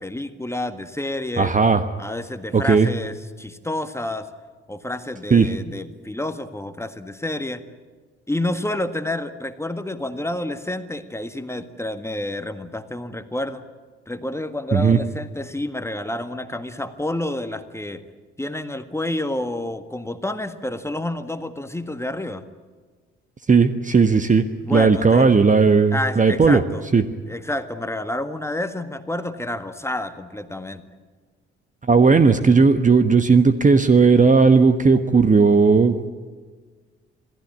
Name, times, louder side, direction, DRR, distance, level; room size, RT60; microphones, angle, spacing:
voice 1, 0.0-1.5 2.0-4.3 4.7-7.6 8.3-13.6 14.1-18.0 18.4-22.4 24.6-25.3 25.9-26.8 27.2-30.8, left 1 dB, 10° left, 9 dB, 1.7 m, -29 dB
voice 2, 1.4-1.8 2.5-2.9 5.3-5.5 14.7-15.0 23.5-24.4 24.7-26.6 26.9-27.0 31.9-36.1, right 4 dB, 25° right, 10 dB, 1.2 m, -15 dB
27.5 x 18.0 x 8.7 m, 1.4 s
figure-of-eight pair, 45°, 32 cm